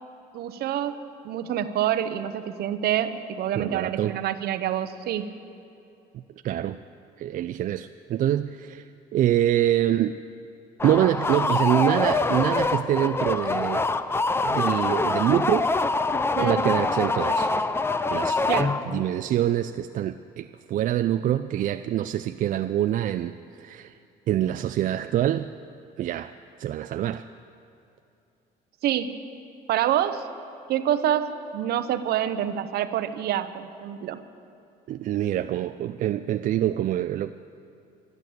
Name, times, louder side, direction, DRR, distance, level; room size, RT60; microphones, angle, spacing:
voice 1, 0.3-1.0 1.2-5.3 16.4-16.6 18.5-18.8 28.8-29.2 29.7-30.3 30.7-34.2, right 11 dB, 70° right, 11 dB, 0.8 m, -27 dB
voice 2, 3.5-4.2 6.4-6.8 7.2-10.2 10.8-13.9 14.4-15.7 16.4-17.5 18.1-18.4 18.9-23.9 24.3-25.5 26.0-26.3 26.6-27.3 34.9-37.3, right 12 dB, 50° right, 10 dB, 0.4 m, -25 dB
sound 1, 10.8-19.1, left 3 dB, 15° left, 0.5 m, -25 dB
12.5 x 11.5 x 8.0 m, 2.6 s
cardioid pair, 110°, 17 cm